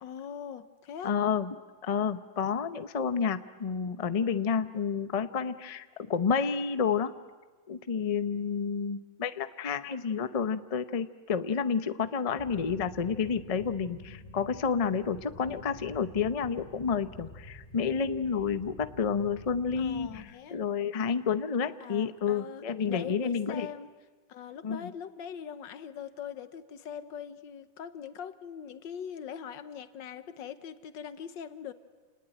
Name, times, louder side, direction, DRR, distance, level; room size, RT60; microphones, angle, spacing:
voice 1, 0.0-1.1 19.8-20.6 21.8-23.9 24.3-31.7, left 8 dB, 75° left, 12 dB, 1.7 m, -42 dB
voice 2, 1.0-1.5 1.8-7.1 7.7-20.1 20.5-23.7 24.6-24.9, left 6 dB, 60° left, 11 dB, 0.3 m, -30 dB
sound 1, 12.4-20.2, left 2 dB, 25° left, 2.7 m, -49 dB
29.0 x 20.0 x 9.1 m, 1.3 s
omnidirectional pair, 2.0 m